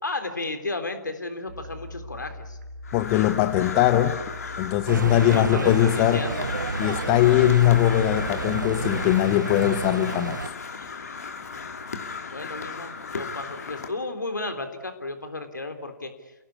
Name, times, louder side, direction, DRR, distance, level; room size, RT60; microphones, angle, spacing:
voice 1, 0.0-2.6 5.3-6.5 10.7-11.1 12.3-16.1, left 2 dB, 70° left, 8 dB, 3.5 m, -33 dB
sound 1, 1.5-9.2, left 1 dB, 45° right, 5.0 m, -41 dB
Crow, 2.8-13.9, left 5 dB, 55° left, 2.9 m, -35 dB
voice 2, 2.9-4.2 4.6-6.3 6.8-10.4, left 13 dB, 25° left, 11 dB, 0.9 m, -21 dB
sound 2, 4.9-10.5, right 4 dB, 70° right, 0.8 m, -31 dB
29.5 x 17.5 x 8.4 m, 1.1 s
figure-of-eight pair, 130°, 10 cm